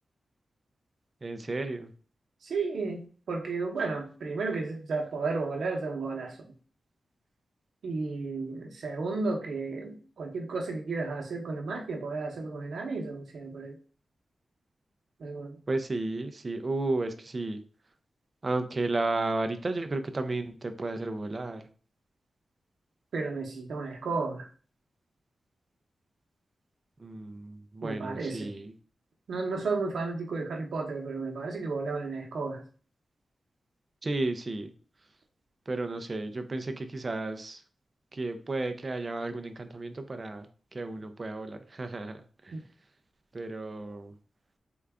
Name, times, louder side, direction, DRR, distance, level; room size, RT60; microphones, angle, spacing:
voice 1, 1.2-1.9 15.7-17.6 18.4-21.7 27.0-28.7 34.0-34.7 35.7-37.6 38.1-42.6 43.3-44.1, right 2 dB, 30° right, 8 dB, 0.4 m, -33 dB
voice 2, 2.4-6.5 7.8-13.8 15.2-15.6 23.1-24.5 27.8-28.5 29.3-32.6 42.5-42.6, right 3 dB, 90° right, 1 dB, 0.7 m, -33 dB
3.7 x 2.2 x 3.5 m, 0.40 s
wide cardioid pair, 155°, 0 cm